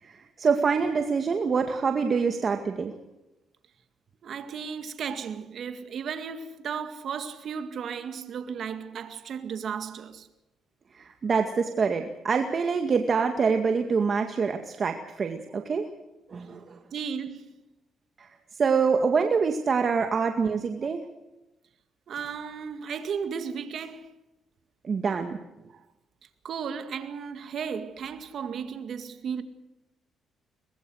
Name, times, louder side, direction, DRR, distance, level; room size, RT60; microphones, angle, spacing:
voice 1, 0.0-2.9 10.9-15.9 16.3-16.8 18.2-21.0 24.8-25.4, right 5 dB, 45° right, 2.0 m, -26 dB
voice 2, 4.2-10.3 16.9-17.6 20.8-20.9 22.1-24.1 25.7-25.8 26.4-29.4, right 6 dB, 60° right, 2.1 m, -35 dB
23.5 x 21.0 x 6.5 m
cardioid pair, 90°, 0 cm